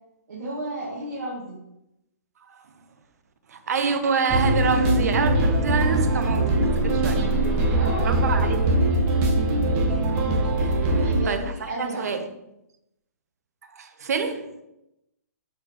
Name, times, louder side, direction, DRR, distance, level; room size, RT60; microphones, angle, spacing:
voice 1, 0.3-1.6 7.3-8.5 10.1-10.5 10.8-12.0, right 1 dB, 85° right, 1.5 m, -34 dB
voice 2, 3.5-7.2 8.0-8.8 10.6-11.5 11.8-12.3 13.8-14.6, right 5 dB, 70° right, 0.8 m, -27 dB
sound 1, 4.3-11.2, right 1 dB, 25° right, 1.0 m, -22 dB
6.8 x 4.7 x 3.0 m
hypercardioid pair, 155°, 9 cm